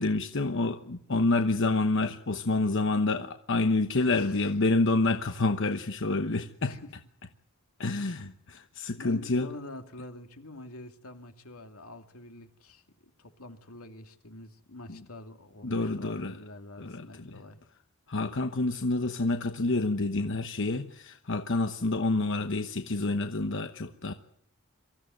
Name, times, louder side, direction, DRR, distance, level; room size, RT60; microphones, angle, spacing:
voice 1, 0.0-6.8 7.8-9.5 14.9-15.0 15.6-16.4 16.8-17.4 18.1-24.1, left 2 dB, 60° left, 7 dB, 1.1 m, -28 dB
voice 2, 4.1-4.5 6.6-6.9 9.0-12.8 13.2-17.6, left 2 dB, 85° left, 6 dB, 2.6 m, -46 dB
24.0 x 15.0 x 9.3 m, 0.73 s
head